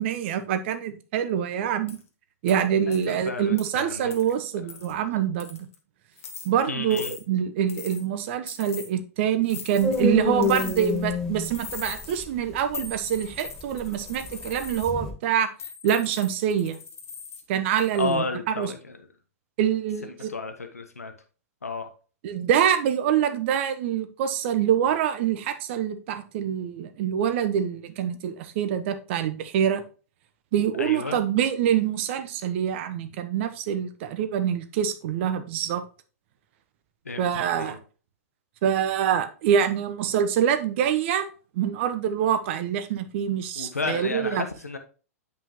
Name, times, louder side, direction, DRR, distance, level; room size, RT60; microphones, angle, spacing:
voice 1, 0.0-2.0 2.4-5.7 6.4-15.5 15.8-16.8 17.5-18.7 19.6-20.3 22.2-29.8 30.5-35.8 37.2-37.8 38.6-41.3 41.5-44.4, right 9 dB, 50° right, 1.1 m, -25 dB
sound 1, 1.9-2.0 2.5-2.6 2.9-3.1 3.6-3.7 4.1-4.3 4.7-4.9 5.4-5.7 6.2-6.5 6.9-7.2 7.7-8.0 8.5-8.9 9.5-10.1 10.4-11.0 11.4-12.2 12.7-14.9 15.6-17.4 17.8-18.1, left 6 dB, 65° left, 1.6 m, -40 dB
voice 2, 2.9-4.1 4.9-5.0 6.7-7.1 18.0-19.0 20.3-21.1 21.6-21.9 30.8-31.2 37.0-37.8 43.6-44.8, left 3 dB, 85° left, 1.0 m, -32 dB
sound 2, 9.8-15.1, left 3 dB, 5° left, 2.0 m, -28 dB
9.1 x 5.4 x 3.0 m
figure-of-eight pair, 105°, 8 cm